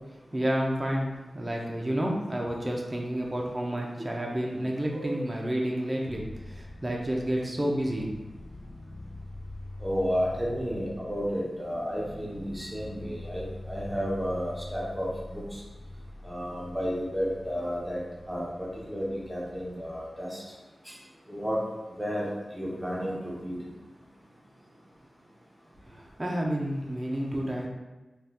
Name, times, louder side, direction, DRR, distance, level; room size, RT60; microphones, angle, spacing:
voice 1, 0.3-8.1 25.9-27.7, right 1 dB, 25° right, -1 dB, 0.5 m, -30 dB
sound 1, 6.1-20.1, left 1 dB, 70° left, 0.5 m, -44 dB
voice 2, 9.8-15.4 16.2-18.0 18.3-18.5 18.9-20.4 21.3-21.6 22.0-23.6, equal, 5° right, -5 dB, 0.9 m, -32 dB
2.7 x 2.3 x 3.4 m, 1.1 s
wide cardioid pair, 70°, 0 cm